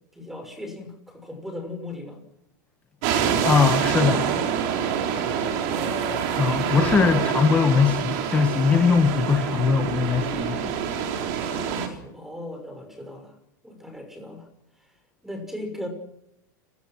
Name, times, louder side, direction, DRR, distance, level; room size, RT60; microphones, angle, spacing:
voice 1, 0.1-2.2 5.1-6.6 6.9-7.3 10.8-13.3 13.6-14.5 15.2-15.9, left 1 dB, 5° right, 6 dB, 5.9 m, -38 dB
sound 1, 3.0-11.9, right 8 dB, 50° right, 4.4 m, -26 dB
voice 2, 3.4-4.4 6.4-10.7, left 6 dB, 15° left, 8 dB, 1.3 m, -21 dB
30.0 x 18.5 x 6.2 m, 0.84 s
supercardioid pair, 160°, 10 cm